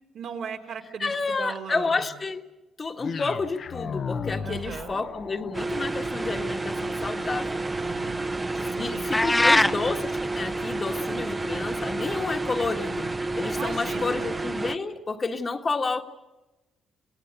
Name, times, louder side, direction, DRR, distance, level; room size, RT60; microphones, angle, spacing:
voice 1, 0.1-1.9 4.4-5.0 7.8-9.9 13.6-14.4, right 6 dB, 70° right, 1 dB, 3.7 m, -38 dB
voice 2, 1.0-2.4 2.8-7.6 8.6-16.0, left 4 dB, 35° left, 4 dB, 1.7 m, -30 dB
sound 1, 3.0-11.2, left 6 dB, 50° left, 1.1 m, -39 dB
sound 2, 5.5-14.7, right 2 dB, 20° right, 1.1 m, -30 dB
sound 3, 9.1-9.8, left 2 dB, 15° left, 0.7 m, -19 dB
28.0 x 18.0 x 8.3 m, 1.1 s
cardioid pair, 90°, 0 cm